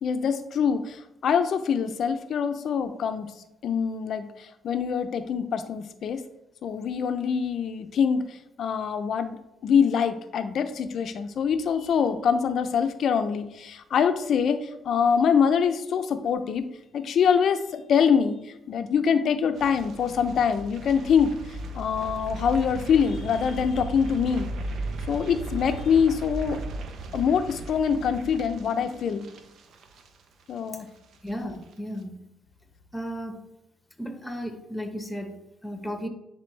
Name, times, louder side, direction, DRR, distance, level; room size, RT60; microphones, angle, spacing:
voice 1, 0.0-3.3 3.6-6.2 6.6-16.7 16.9-18.4 18.7-21.3 21.7-24.5 25.1-26.6 27.1-29.3 30.5-30.9, left 7 dB, 65° left, 9 dB, 0.6 m, -24 dB
sound 1, 19.5-30.7 31.0-31.3 31.6-31.7, right 2 dB, 70° right, 0.8 m, -37 dB
voice 2, 31.2-32.3 32.9-33.5 34.0-36.1, equal, 10° left, 5 dB, 1.2 m, -35 dB
10.0 x 3.7 x 3.3 m, 0.87 s
cardioid pair, 90°, 0 cm